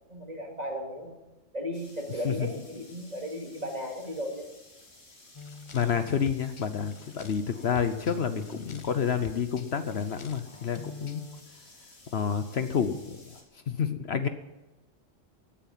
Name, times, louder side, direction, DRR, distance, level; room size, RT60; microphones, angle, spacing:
voice 1, 0.1-1.2 1.5-4.4, equal, 30° right, 1 dB, 2.5 m, -35 dB
sound 1, 1.7-13.4, left 2 dB, 75° left, 3.3 m, -55 dB
sound 2, 5.3-11.4, left 3 dB, 40° left, 0.4 m, -46 dB
voice 2, 5.7-11.2 12.1-13.2 13.7-14.3, left 7 dB, 60° left, 10 dB, 1.0 m, -29 dB
16.5 x 9.1 x 7.3 m, 1.1 s
omnidirectional pair, 1.3 m